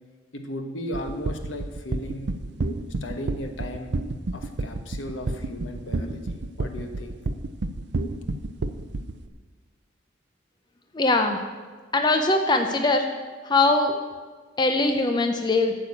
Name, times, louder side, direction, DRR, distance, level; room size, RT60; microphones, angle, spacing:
voice 1, 0.3-2.4 3.0-3.9 4.3-7.2, equal, 75° left, 5 dB, 1.2 m, -36 dB
sound 1, 0.9-9.2, right 2 dB, 60° right, 0.5 m, -29 dB
voice 2, 10.9-11.4 11.9-13.1 13.4-14.0 14.6-15.7, left 2 dB, 20° left, 5 dB, 0.6 m, -21 dB
8.9 x 6.8 x 8.3 m, 1.4 s
head